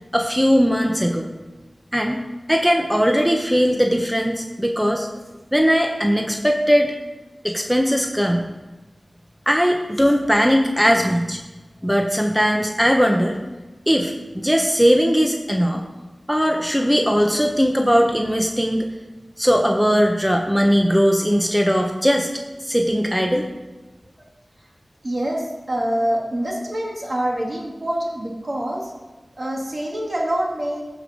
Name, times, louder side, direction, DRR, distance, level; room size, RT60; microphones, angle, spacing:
voice 1, 0.1-1.3 1.9-2.2 2.5-5.1 5.5-6.9 7.4-8.4 9.5-11.4 11.8-13.4 13.9-15.8 16.3-18.9 19.4-22.3 22.6-23.5, equal, 5° right, 2 dB, 1.0 m, -19 dB
voice 2, 25.0-28.9 29.4-30.8, right 1 dB, 50° right, -2 dB, 2.5 m, -25 dB
15.0 x 5.1 x 5.2 m, 1.2 s
wide cardioid pair, 45°, 0 cm